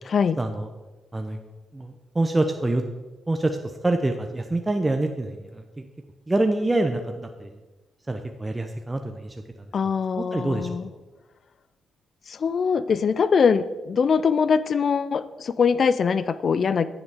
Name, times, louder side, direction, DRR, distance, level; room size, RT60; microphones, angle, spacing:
voice 1, 0.4-0.7 1.1-1.4 1.7-2.8 3.3-3.6 3.8-5.6 6.3-7.5 8.1-9.4 10.2-10.7, right 2 dB, 25° right, 5 dB, 0.7 m, -25 dB
voice 2, 9.7-10.8 12.3-16.9, left 6 dB, 55° left, 15 dB, 0.4 m, -22 dB
9.6 x 7.2 x 3.6 m, 1.2 s
hypercardioid pair, 45°, 0 cm